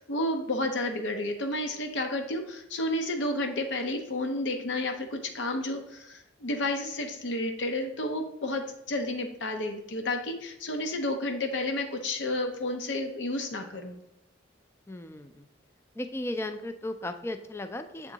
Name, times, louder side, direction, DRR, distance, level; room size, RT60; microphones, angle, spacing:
voice 1, 0.0-14.0, left 1 dB, 80° left, 4 dB, 0.7 m, -31 dB
voice 2, 14.9-15.5 16.0-18.1, left 1 dB, 15° left, 8 dB, 0.3 m, -36 dB
7.2 x 3.6 x 3.9 m, 0.81 s
head